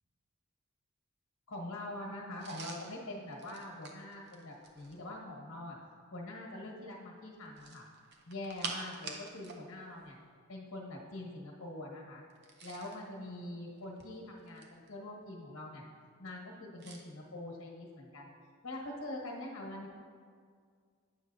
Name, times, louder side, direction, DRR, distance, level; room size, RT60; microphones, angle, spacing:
voice 1, 1.5-5.8 6.1-7.9 8.3-10.2 10.5-12.2 12.6-15.8 16.2-18.3 18.6-19.9, left 1 dB, 90° left, -1 dB, 1.2 m, -44 dB
sound 1, 2.4-5.1 7.5-9.6 9.9-10.1 12.3-13.0 13.8-14.9 16.8-17.1, right 4 dB, 50° right, 0.7 m, -46 dB
9.2 x 6.3 x 2.7 m, 2.1 s
head